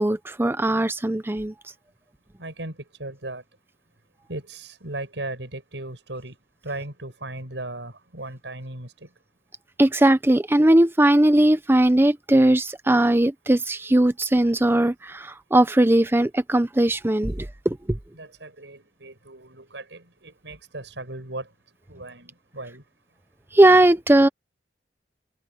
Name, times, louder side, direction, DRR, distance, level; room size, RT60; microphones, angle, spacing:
voice 1, 0.0-1.5 9.8-18.0 23.5-24.3, right 1 dB, 15° right, 0.6 m, -19 dB
voice 2, 2.4-3.4 4.3-6.4 6.6-9.1 18.1-21.5 21.9-22.8, right 2 dB, 85° right, 7.5 m, -37 dB
head